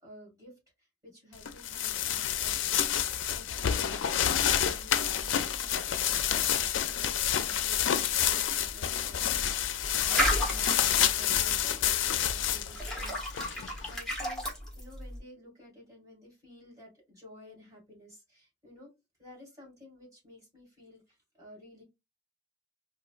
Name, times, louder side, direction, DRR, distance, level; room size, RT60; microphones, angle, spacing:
voice 1, 0.0-6.4 6.9-14.4 14.8-18.9 19.2-21.8, equal, 20° right, -4 dB, 2.2 m, -53 dB
sound 1, 1.4-14.0, left 10 dB, 80° left, 0.4 m, -29 dB
sound 2, 3.5-15.2, equal, 5° left, 0.9 m, -36 dB
3.9 x 2.5 x 2.4 m, 0.23 s
head